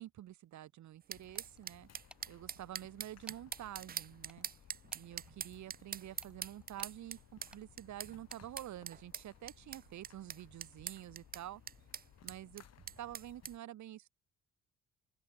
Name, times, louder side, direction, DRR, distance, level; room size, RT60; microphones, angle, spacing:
voice 1, 0.0-1.9 2.3-4.5 4.9-11.6 12.2-12.6 13.0-14.1, right 13 dB, 70° right, 1.2 m, -48 dB
sound 1, 1.1-13.6, left 10 dB, 55° left, 1.5 m, -62 dB
sound 2, 1.1-13.5, right 8 dB, 30° right, 0.5 m, -45 dB
sound 3, 1.3-1.7 2.1-2.3 3.3-3.7 4.3-5.3 6.2-7.0 7.5-7.7 8.3-8.7, right 1 dB, 5° right, 0.8 m, -59 dB
open air
cardioid pair, 90°, 30 cm